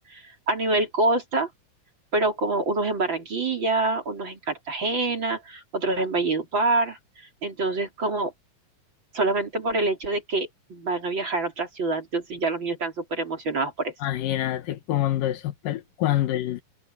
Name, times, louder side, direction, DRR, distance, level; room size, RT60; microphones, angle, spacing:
voice 1, 0.5-1.5 2.1-7.0 7.4-8.3 9.1-13.9, right 2 dB, 35° right, 4.0 m, -26 dB
voice 2, 14.0-16.6, left 13 dB, 80° left, 2.7 m, -26 dB
omnidirectional pair, 4.0 m